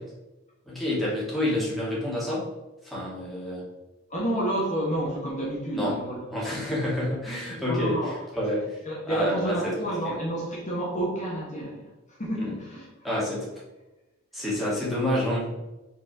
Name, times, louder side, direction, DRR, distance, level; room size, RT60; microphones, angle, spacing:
voice 1, 0.7-2.5 2.8-3.7 5.7-6.0 6.3-8.8 9.0-9.7 10.1-10.2 12.4-12.5 13.0-13.5 14.3-15.5, left 1 dB, ahead, -7 dB, 2.1 m, -28 dB
voice 2, 4.1-6.2 6.5-6.8 7.7-8.3 8.8-12.9, right 1 dB, 35° left, -5 dB, 1.4 m, -30 dB
5.4 x 4.1 x 4.8 m, 1.0 s
head